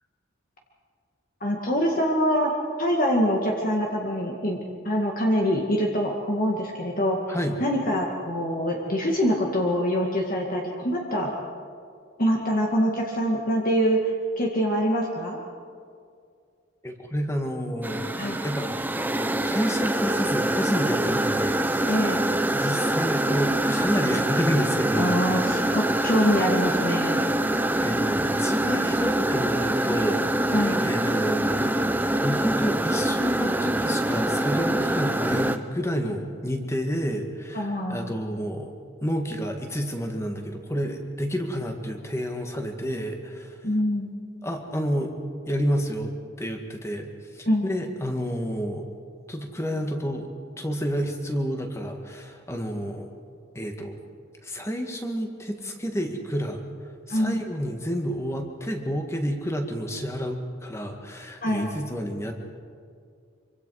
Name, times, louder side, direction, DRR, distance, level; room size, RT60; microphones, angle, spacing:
voice 1, 1.4-2.5 2.8-4.6 4.8-7.2 7.6-11.3 12.2-15.4 18.2-18.4 21.9-22.2 24.9-27.3 30.5-30.8 37.5-38.0 43.6-44.1 47.5-47.7 57.1-57.4 61.4-61.7, equal, 45° left, -1 dB, 2.1 m, -24 dB
voice 2, 7.3-7.6 16.8-18.1 18.4-22.0 22.5-25.4 27.4-30.2 30.5-31.7 32.2-38.7 39.0-43.6 44.4-45.1 45.5-46.1 46.4-48.8 49.3-50.3 50.6-53.1 53.6-54.0 54.4-56.6 57.1-62.3, equal, 15° left, 3 dB, 1.9 m, -29 dB
sound 1, 17.8-35.6, right 1 dB, 10° right, 0.7 m, -25 dB
26.0 x 25.0 x 4.9 m, 2.2 s
head